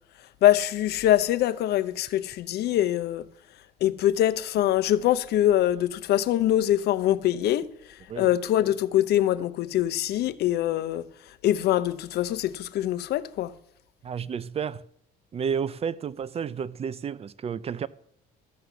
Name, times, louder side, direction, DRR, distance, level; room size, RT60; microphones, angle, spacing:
voice 1, 0.4-3.3 3.8-13.5, left 12 dB, 75° left, 0.9 m, -24 dB
voice 2, 14.0-14.8 15.3-17.9, right 7 dB, 35° right, 0.5 m, -31 dB
14.0 x 7.7 x 6.9 m
cardioid pair, 110°, 17 cm